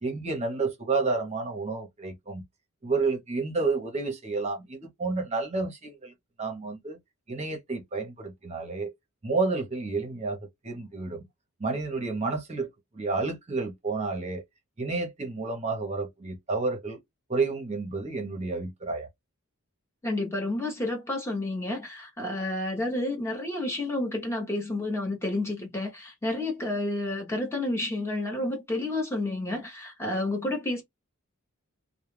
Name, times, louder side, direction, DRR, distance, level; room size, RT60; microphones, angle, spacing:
voice 1, 0.0-2.4 2.8-6.1 6.4-7.0 7.3-8.9 9.2-10.4 10.6-11.2 11.6-12.7 12.9-14.4 14.8-17.0 17.3-19.1, right 3 dB, 30° right, 0.7 m, -30 dB
voice 2, 20.0-30.8, left 2 dB, 10° left, 0.8 m, -30 dB
2.3 x 2.1 x 3.1 m
head